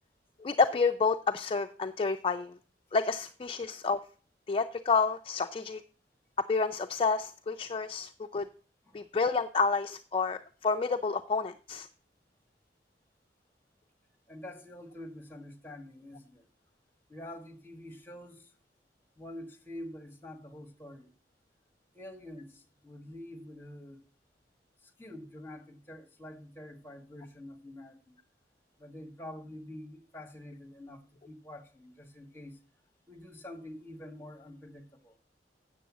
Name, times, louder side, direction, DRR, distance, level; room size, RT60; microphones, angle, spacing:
voice 1, 0.4-2.5 2.9-4.0 4.5-5.8 6.4-8.5 8.9-11.9, left 4 dB, 30° left, 0.4 m, -29 dB
voice 2, 14.3-16.5 17.1-18.5 19.2-21.1 21.9-24.0 25.0-28.2 28.8-32.6 33.1-35.2, left 1 dB, 15° left, 1.6 m, -46 dB
8.2 x 7.0 x 7.3 m
head